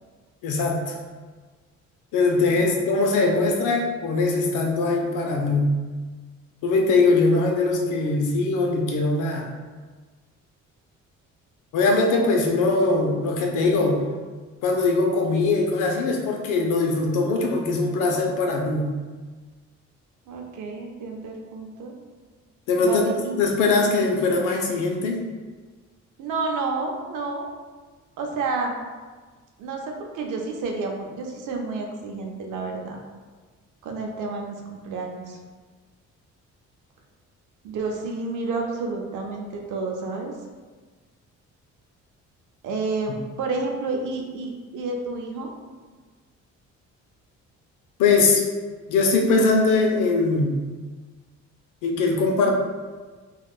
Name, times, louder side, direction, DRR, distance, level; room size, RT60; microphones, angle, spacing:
voice 1, 0.4-1.0 2.1-5.7 6.6-9.5 11.7-14.0 14.6-18.9 22.7-23.1 23.4-25.2 48.0-48.4 48.9-50.6 51.8-52.6, left 3 dB, 85° left, 2 dB, 0.6 m, -21 dB
voice 2, 20.3-21.9 22.8-23.4 26.2-27.5 28.2-28.7 29.6-33.0 33.8-35.4 37.6-40.3 42.6-45.5, right 3 dB, 85° right, 1 dB, 0.6 m, -30 dB
3.5 x 2.3 x 2.3 m, 1.4 s
cardioid pair, 90°, 30 cm